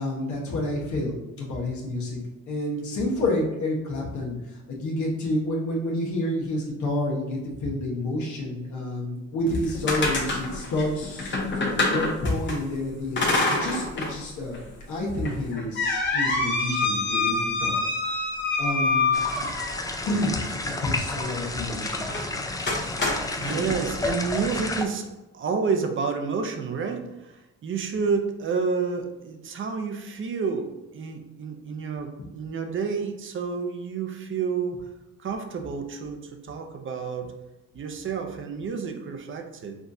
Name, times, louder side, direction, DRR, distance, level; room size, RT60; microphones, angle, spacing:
voice 1, 0.0-2.2 2.5-11.4 11.9-14.6 14.9-19.5 20.0-22.1 23.4-23.7, left 1 dB, 70° left, -4 dB, 1.1 m, -29 dB
sound 1, 9.5-12.6 13.2-14.2 14.5-14.6 15.2-19.9 22.1-22.3 22.7-23.6, left 3 dB, 40° left, 1.0 m, -26 dB
sound 2, 19.1-24.8, left 2 dB, 10° left, 0.4 m, -31 dB
voice 2, 22.9-25.1 25.3-34.8 35.2-37.3 37.7-39.8, right 5 dB, 40° right, 5 dB, 0.6 m, -30 dB
6.0 x 2.4 x 2.7 m, 1.0 s
cardioid pair, 90°, 30 cm